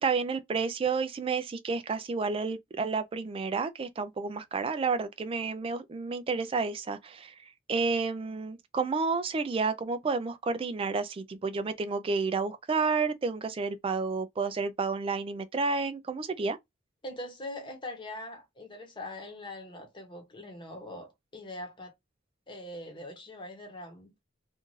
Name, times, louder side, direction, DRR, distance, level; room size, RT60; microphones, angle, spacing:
voice 1, 0.0-7.3 7.7-16.6, right 4 dB, 25° right, 0.3 m, -30 dB
voice 2, 17.0-21.9 22.5-24.1, left 1 dB, 25° left, 0.9 m, -42 dB
2.5 x 2.4 x 2.9 m
head